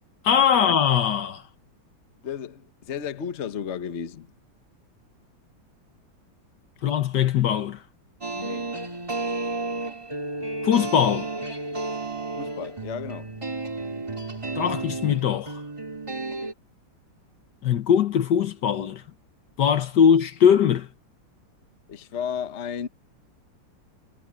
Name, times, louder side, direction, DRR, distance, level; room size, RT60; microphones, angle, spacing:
voice 1, 0.2-1.4 6.8-7.8 10.6-11.3 14.6-15.6 17.6-19.0 19.6-20.9, left 8 dB, 65° left, 1.5 m, -21 dB
voice 2, 2.2-4.3 8.3-8.8 12.4-13.3 21.9-22.9, left 7 dB, 40° left, 1.2 m, -33 dB
sound 1, 8.2-16.5, right 2 dB, 15° right, 3.0 m, -32 dB
omnidirectional pair, 2.1 m